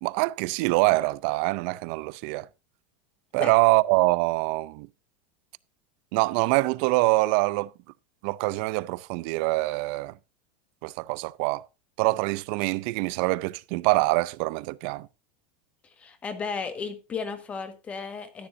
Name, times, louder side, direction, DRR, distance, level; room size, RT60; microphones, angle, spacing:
voice 1, 0.0-2.5 3.3-4.9 6.1-7.7 8.2-10.1 10.8-11.7 12.0-15.1, right 22 dB, 55° right, 0.5 m, -24 dB
voice 2, 16.0-18.5, left 5 dB, 20° left, 1.6 m, -34 dB
13.5 x 9.7 x 2.6 m
supercardioid pair, 150°, 6 cm